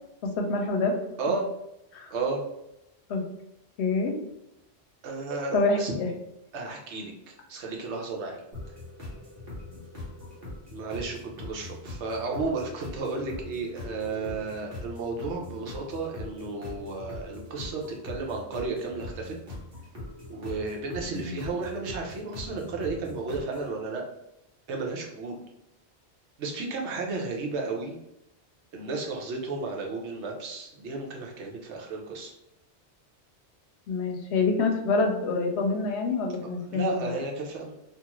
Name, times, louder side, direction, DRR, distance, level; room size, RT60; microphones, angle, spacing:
voice 1, 0.2-1.0 1.9-2.1 3.1-3.3 3.8-4.1 5.5-6.1 21.2-21.3 33.9-37.1, left 3 dB, 75° left, 2 dB, 0.8 m, -26 dB
voice 2, 2.1-2.4 5.0-5.9 6.5-8.4 10.7-19.3 20.3-24.0 24.7-25.4 26.4-27.9 28.7-32.3 36.7-37.7, right 3 dB, 80° right, 1 dB, 0.9 m, -33 dB
sound 1, 8.5-23.7, left 2 dB, 55° right, 1.1 m, -42 dB
2.5 x 2.4 x 2.9 m, 0.86 s
omnidirectional pair, 1.2 m